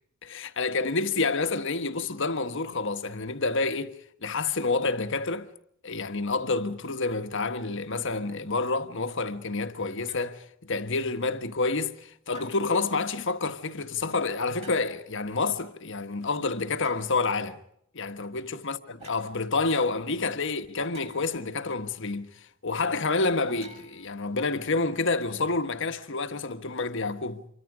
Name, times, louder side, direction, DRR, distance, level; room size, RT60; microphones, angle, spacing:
voice 1, 0.2-3.9 4.2-5.5 5.8-17.6 17.9-27.4, left 3 dB, 60° left, 1.4 m, -29 dB
sound 1, 10.0-10.4 12.3-12.9 14.5-15.1 16.8-17.1 19.0-19.3 20.8-21.5 23.4-24.6, right 4 dB, 30° right, 6.5 m, -51 dB
27.0 x 24.0 x 5.0 m
head